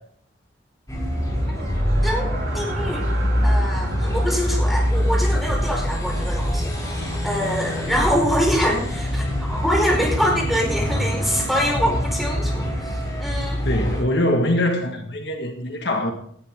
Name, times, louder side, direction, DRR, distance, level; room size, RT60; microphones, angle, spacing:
sound 1, 0.9-14.0, equal, 15° left, 6.9 m, -24 dB
sound 2, 1.1-9.1, right 2 dB, 85° right, 3.1 m, -38 dB
voice 1, 2.0-3.0 3.4-13.6, equal, ahead, 4.6 m, -25 dB
voice 2, 13.7-16.1, left 1 dB, 60° left, 1.8 m, -23 dB
19.0 x 12.0 x 3.7 m
head